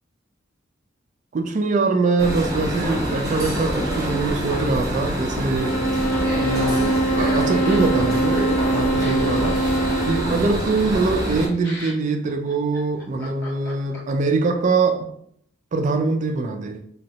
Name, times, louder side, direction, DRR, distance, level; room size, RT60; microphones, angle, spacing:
voice 1, 1.3-5.8 6.4-8.4 8.7-9.6 10.1-15.1 15.7-16.8, right 3 dB, 35° right, 0.3 m, -23 dB
sound 1, 2.2-11.5, equal, 20° right, 0.7 m, -26 dB
sound 2, 5.5-10.4, right 2 dB, 75° left, 0.4 m, -23 dB
Laughter, 6.2-14.3, left 1 dB, 55° left, 0.9 m, -39 dB
3.5 x 2.0 x 2.7 m
head